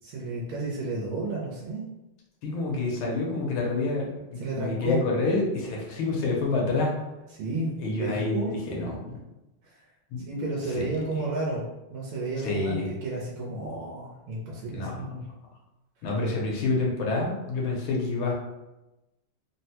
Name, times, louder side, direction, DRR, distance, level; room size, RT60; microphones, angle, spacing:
voice 1, 0.0-1.8 4.4-5.0 7.4-8.5 9.6-9.8 10.2-11.6 11.9-15.3, right 2 dB, 90° right, -4 dB, 1.6 m, -32 dB
voice 2, 2.4-6.9 7.8-9.2 10.1-10.2 10.8-10.9 12.4-12.8 14.7-15.0 16.0-18.3, left 3 dB, 75° left, -2 dB, 1.5 m, -28 dB
3.8 x 2.1 x 2.8 m, 0.99 s
omnidirectional pair, 2.3 m